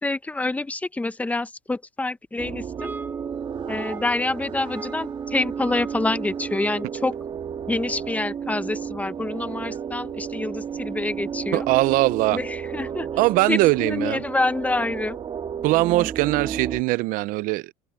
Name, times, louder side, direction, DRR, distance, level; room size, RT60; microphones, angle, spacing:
voice 1, 0.0-2.9 3.7-7.2 7.7-11.7 12.3-13.1 13.5-15.2, left 2 dB, 10° left, 1.0 m, -27 dB
sound 1, 2.4-16.8, right 7 dB, 30° right, 1.7 m, -33 dB
sound 2, 2.8-7.1, right 3 dB, 10° right, 4.3 m, -39 dB
voice 2, 11.5-12.4 13.2-14.2 15.6-17.7, right 19 dB, 60° right, 0.6 m, -21 dB
cardioid pair, 130°, 16 cm